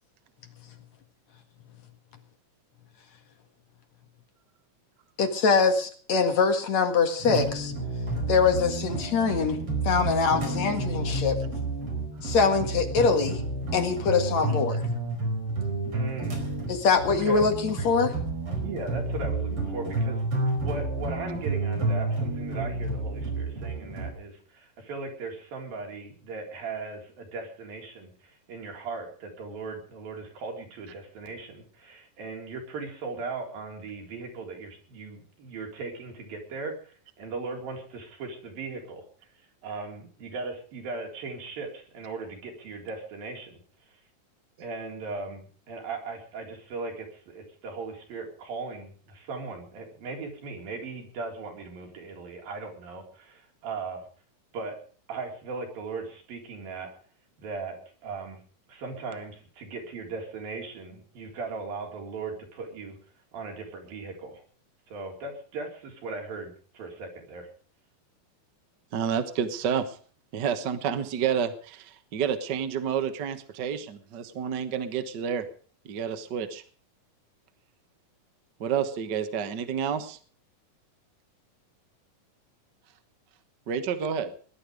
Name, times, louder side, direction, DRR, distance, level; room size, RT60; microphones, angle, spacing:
voice 1, 5.2-7.7 8.3-9.6 9.8-11.4 12.2-13.4 13.7-14.8 16.7-18.1, left 5 dB, 55° left, 6 dB, 2.9 m, -23 dB
sound 1, 7.2-24.1, right 2 dB, 40° right, 5.5 m, -30 dB
voice 2, 15.9-16.4 17.1-17.5 18.6-20.2 20.6-39.0 39.6-43.6 43.9-44.0 44.6-54.0 54.5-54.8 55.1-56.9 57.4-58.4 58.7-63.0 63.3-64.4 64.9-67.5, right 3 dB, 85° right, 2 dB, 5.7 m, -38 dB
voice 3, 68.9-70.0 70.3-75.5 75.8-76.6 78.6-80.2 83.7-84.3, right 7 dB, 60° right, 10 dB, 1.1 m, -29 dB
20.0 x 11.5 x 5.1 m, 0.43 s
omnidirectional pair, 4.0 m